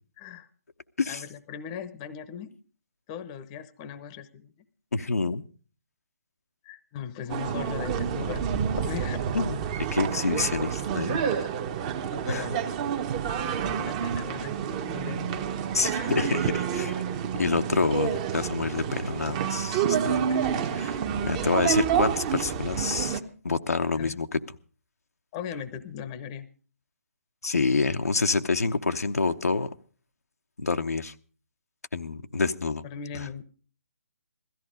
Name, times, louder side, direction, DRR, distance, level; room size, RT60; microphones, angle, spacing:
voice 1, 0.2-0.5 1.1-2.5 3.1-4.5 6.6-8.5 8.9-9.2 11.1-11.5 12.1-12.6 13.7-15.4 15.9-16.3 19.0-19.1 20.1-20.9 21.4-21.5 24.0-24.2 25.3-26.5 32.8-33.4, left 8 dB, 25° left, 0.9 m, -39 dB
voice 2, 4.9-5.4 9.3-9.6 9.9-11.2 12.3-12.5 15.7-17.0 17.3-20.3 20.8-21.0 21.2-23.2 23.4-24.4 27.4-29.7 30.6-31.1 31.9-32.8 33.1-33.3, left 4 dB, 80° left, 0.9 m, -27 dB
sound 1, 7.3-23.2, right 8 dB, 25° right, 1.0 m, -29 dB
16.5 x 14.0 x 5.0 m
figure-of-eight pair, 150°, 8 cm